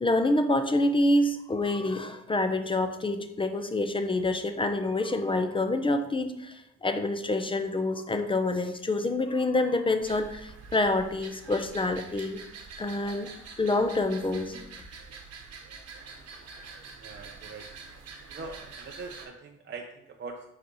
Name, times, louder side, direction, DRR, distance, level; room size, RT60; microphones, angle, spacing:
voice 1, 0.0-12.4 12.8-13.3 13.6-14.6, left 2 dB, 15° left, 8 dB, 0.7 m, -27 dB
sound 1, 10.0-19.3, right 4 dB, 55° right, 1.1 m, -46 dB
voice 2, 17.0-17.6 18.3-20.5, right 4 dB, 40° right, 2 dB, 0.6 m, -42 dB
4.9 x 4.4 x 5.2 m, 0.84 s
cardioid pair, 90°, 30 cm